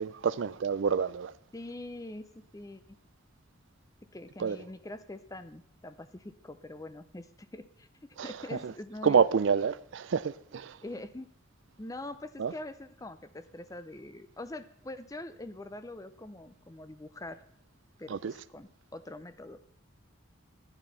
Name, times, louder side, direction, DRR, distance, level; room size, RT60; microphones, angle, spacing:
voice 1, 0.0-1.3 4.4-4.6 8.2-8.7 9.0-10.8 12.4-12.5 18.1-18.3, right 6 dB, 65° right, 0.4 m, -28 dB
voice 2, 1.5-3.0 4.1-9.2 10.8-11.3 11.8-17.4 18.0-19.6, left 2 dB, 15° left, 0.5 m, -44 dB
12.5 x 8.9 x 5.5 m
head